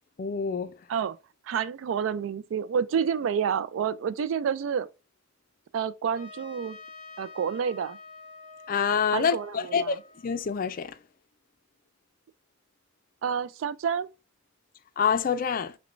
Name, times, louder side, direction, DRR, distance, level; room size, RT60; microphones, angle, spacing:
voice 1, 0.2-0.8 8.7-10.0 10.2-11.0 15.0-15.8, left 6 dB, 45° left, 0.4 m, -26 dB
voice 2, 1.5-4.9 5.7-6.8 7.2-8.0 9.1-9.9 13.2-14.1, right 7 dB, 85° right, 0.3 m, -29 dB
Trumpet, 6.1-11.0, left 3 dB, 25° right, 1.4 m, -48 dB
5.9 x 2.2 x 2.5 m
head